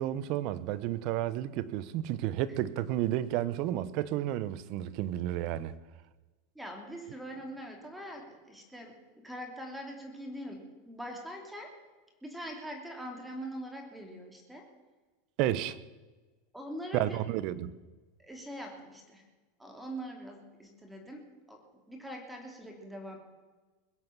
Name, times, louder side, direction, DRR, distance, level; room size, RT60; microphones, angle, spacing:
voice 1, 0.0-5.7 15.4-15.8 16.9-17.8, right 13 dB, 50° right, 0.9 m, -31 dB
voice 2, 6.5-10.6 10.9-11.7 12.2-14.7 16.5-17.2 18.2-19.2 19.6-21.6 21.9-23.2, equal, 5° right, 2.9 m, -43 dB
22.0 x 8.0 x 7.2 m
supercardioid pair, 140°, 0 cm